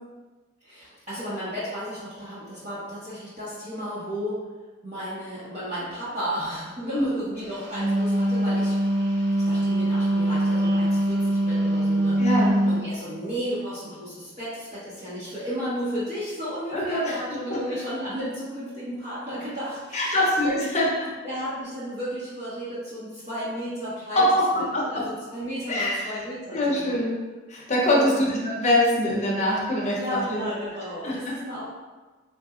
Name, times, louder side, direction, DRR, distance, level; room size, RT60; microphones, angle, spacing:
voice 1, 0.6-4.5 4.8-9.0 9.4-12.2 12.6-20.2 20.4-20.6 21.2-24.3 24.9-27.0 27.9-28.2 29.9-31.7, equal, 35° right, -15 dB, 1.2 m, -33 dB
Wind instrument woodwind instrument, 7.6-12.9, right 1 dB, 60° right, 0.9 m, -23 dB
voice 2, 12.2-12.5 16.7-17.1 19.9-21.1 24.2-24.5 24.7-24.9 25.7-26.1 26.5-27.1 27.5-30.5 31.0-31.4, left 1 dB, 35° left, -4 dB, 0.8 m, -23 dB
4.1 x 2.5 x 2.4 m, 1.3 s
head